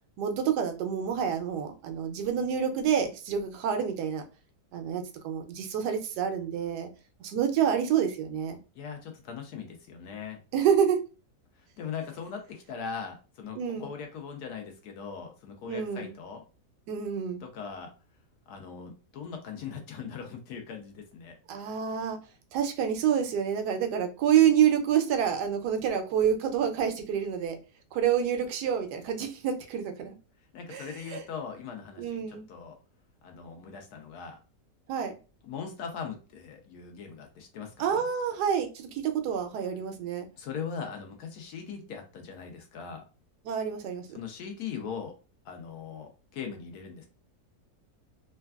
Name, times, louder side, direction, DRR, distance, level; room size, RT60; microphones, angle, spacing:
voice 1, 0.2-4.2 4.7-6.9 7.2-8.6 10.5-11.0 13.6-13.9 15.7-16.1 16.9-17.4 21.5-22.2 22.5-27.6 27.9-30.2 30.7-31.2 32.0-32.5 34.9-35.1 37.8-40.3 43.5-44.1, right 8 dB, 85° right, 1.2 m, -28 dB
voice 2, 8.8-10.4 11.6-16.4 17.4-17.9 18.5-21.3 30.5-32.8 33.2-34.4 35.4-38.0 40.4-43.0 44.1-45.2 45.4-47.1, left 6 dB, 75° left, 1.1 m, -40 dB
3.3 x 2.2 x 2.2 m
omnidirectional pair, 1.7 m